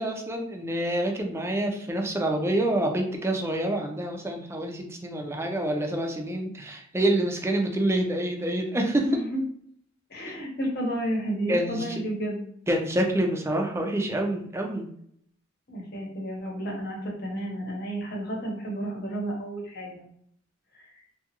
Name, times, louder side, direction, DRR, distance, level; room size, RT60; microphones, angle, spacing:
voice 1, 0.0-9.0 11.5-12.0 12.7-14.9, right 1 dB, 15° right, 2 dB, 0.4 m, -27 dB
voice 2, 9.0-9.4 10.1-12.4 15.7-20.1 20.8-20.9, right 1 dB, 55° left, -1 dB, 0.9 m, -31 dB
2.7 x 2.3 x 2.9 m, 0.66 s
head